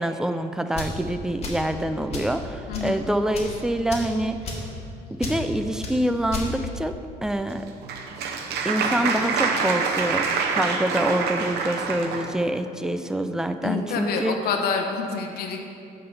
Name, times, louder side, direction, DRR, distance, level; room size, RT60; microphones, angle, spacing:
voice 1, 0.0-4.4 5.1-7.7 8.6-14.4, right 1 dB, 5° right, 9 dB, 0.4 m, -26 dB
sound 1, 0.7-1.0 1.4-1.7 2.1-2.3 2.7-2.9 3.3-3.6 3.9-4.1 4.4-4.7 5.2-5.4 5.8-6.0 6.3-6.5, left 2 dB, 40° left, 1.9 m, -32 dB
voice 2, 2.7-3.0 13.6-15.6, left 5 dB, 65° left, 3 dB, 0.9 m, -27 dB
Applause, 7.5-12.3, right 5 dB, 75° right, 0.9 m, -26 dB
9.9 x 3.9 x 6.9 m, 2.6 s
cardioid pair, 110°, 17 cm